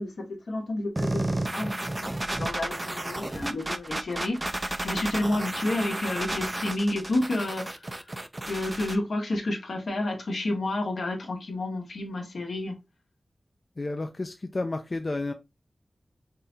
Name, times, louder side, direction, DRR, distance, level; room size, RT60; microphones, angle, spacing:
voice 1, 0.0-1.7 2.0-8.0 8.5-12.7, left 2 dB, 80° left, 0.9 m, -30 dB
sound 1, 1.0-9.0, right 1 dB, 30° right, 0.4 m, -32 dB
voice 2, 13.8-15.3, left 2 dB, 50° left, 0.4 m, -31 dB
3.8 x 2.9 x 2.6 m
cardioid pair, 40°, 0 cm